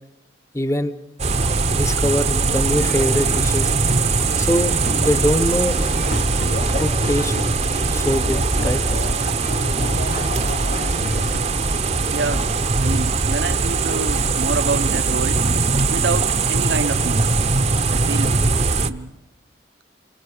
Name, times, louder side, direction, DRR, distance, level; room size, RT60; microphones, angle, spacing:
voice 1, 0.5-0.9 1.7-3.7 4.4-5.8 6.8-7.3 7.9-8.8, equal, 15° left, 0.9 m, -23 dB
sound 1, 1.2-18.9, right 3 dB, 35° right, 0.8 m, -20 dB
sound 2, 2.7-11.4, left 2 dB, 45° left, 0.8 m, -32 dB
voice 2, 12.1-12.5 12.8-15.5 15.9-17.3 17.9-18.4 18.8-19.2, right 3 dB, 70° right, 0.8 m, -27 dB
29.0 x 24.5 x 5.0 m
head